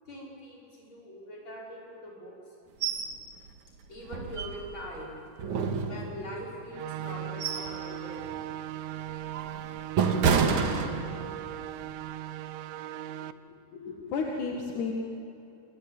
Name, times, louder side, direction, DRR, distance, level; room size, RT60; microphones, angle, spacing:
voice 1, 0.1-2.4 3.9-5.2 5.8-8.5, equal, 35° left, -3 dB, 6.5 m, -42 dB
sound 1, 2.8-3.1 3.5-3.6 4.1-4.9 5.4-6.4 7.0-7.8 8.2-8.4 9.0-11.4 11.8-12.0, right 5 dB, 65° right, 3.0 m, -28 dB
sound 2, 6.7-13.3, right 12 dB, 85° right, 2.3 m, -38 dB
voice 2, 13.7-14.9, left 5 dB, 70° left, 0 dB, 3.3 m, -32 dB
27.5 x 21.5 x 9.4 m, 2.9 s
omnidirectional pair, 3.7 m